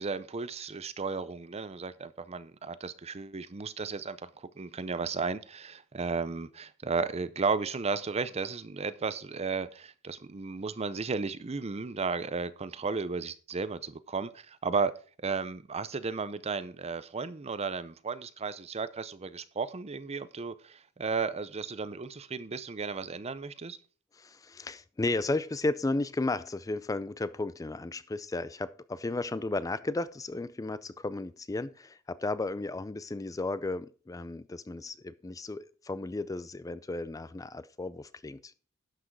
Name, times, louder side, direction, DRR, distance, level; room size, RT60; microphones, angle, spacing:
voice 1, 0.0-4.3 4.6-14.9 15.2-23.8, right 4 dB, 30° right, 0.6 m, -34 dB
voice 2, 24.1-38.5, left 2 dB, 15° left, 0.4 m, -34 dB
11.5 x 6.1 x 4.6 m
head